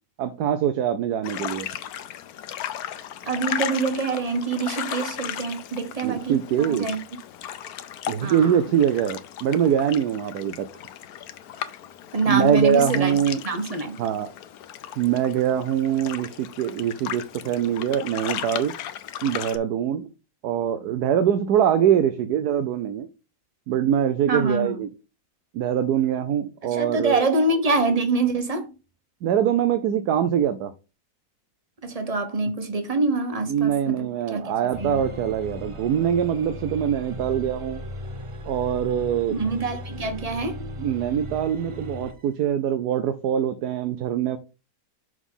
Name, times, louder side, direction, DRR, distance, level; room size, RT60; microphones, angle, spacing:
voice 1, 0.2-1.7 6.0-6.9 8.1-10.7 12.2-13.4 14.0-14.3 15.0-18.7 19.2-20.1 20.4-23.1 23.7-24.9 25.5-27.3 29.2-30.7 33.5-37.8 38.5-39.4 40.8-44.4, right 9 dB, 90° right, 1.2 m, -23 dB
sound 1, 1.2-19.6, left 10 dB, 75° left, 1.1 m, -36 dB
voice 2, 3.3-7.0 8.2-8.5 12.1-13.2 13.4-14.0 24.3-24.7 26.6-28.7 31.8-35.1 39.3-40.6, right 3 dB, 30° right, 0.9 m, -25 dB
sound 2, 34.7-42.2, equal, 55° right, 0.3 m, -37 dB
6.1 x 4.0 x 5.4 m
omnidirectional pair, 1.6 m